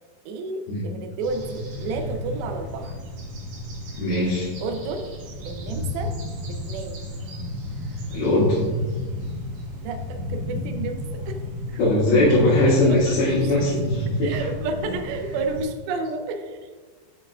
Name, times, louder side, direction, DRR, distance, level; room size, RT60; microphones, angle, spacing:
voice 1, 0.3-2.9 4.6-5.1 5.4-6.1 6.5-7.1 9.8-11.0 11.3-11.4 11.7-11.8 12.8-13.5 14.2-16.8, right 3 dB, 90° right, 5 dB, 2.1 m, -31 dB
sound 1, 1.2-15.6, left 1 dB, 60° right, 1.9 m, -32 dB
voice 2, 4.0-4.5 8.1-8.8 11.8-14.5, left 1 dB, 75° left, -12 dB, 4.4 m, -20 dB
10.5 x 5.6 x 2.4 m, 1.4 s
omnidirectional pair, 5.1 m